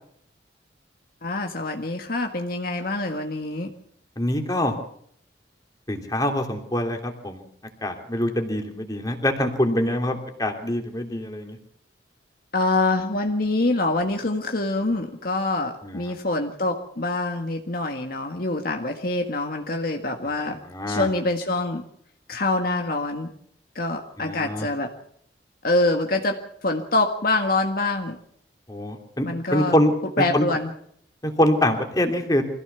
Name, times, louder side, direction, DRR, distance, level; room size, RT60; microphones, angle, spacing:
voice 1, 1.2-3.7 12.5-20.6 20.9-21.8 22.3-23.3 23.8-24.9 25.6-28.2 29.2-29.8 30.2-30.7, left 2 dB, 50° left, 4 dB, 1.8 m, -25 dB
voice 2, 4.2-4.7 5.9-7.4 7.8-11.6 15.8-16.1 20.4-21.1 24.2-24.7 28.7-29.3 29.5-29.9 30.2-30.4 31.2-32.4, left 1 dB, 20° left, 4 dB, 3.0 m, -24 dB
25.0 x 16.0 x 7.0 m, 0.66 s
head